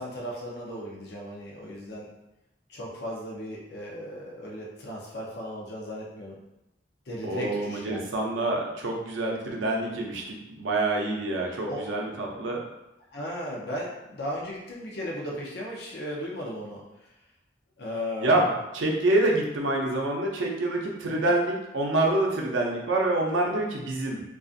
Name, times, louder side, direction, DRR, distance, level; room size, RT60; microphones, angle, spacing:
voice 1, 0.0-2.1 2.7-6.4 7.1-8.1 11.6-11.8 13.1-16.8 17.8-18.6 21.1-21.3, equal, 60° left, -3 dB, 0.5 m, -36 dB
voice 2, 7.2-12.7 18.2-24.2, right 2 dB, 90° right, 0 dB, 0.5 m, -26 dB
2.5 x 2.4 x 2.4 m, 0.90 s
head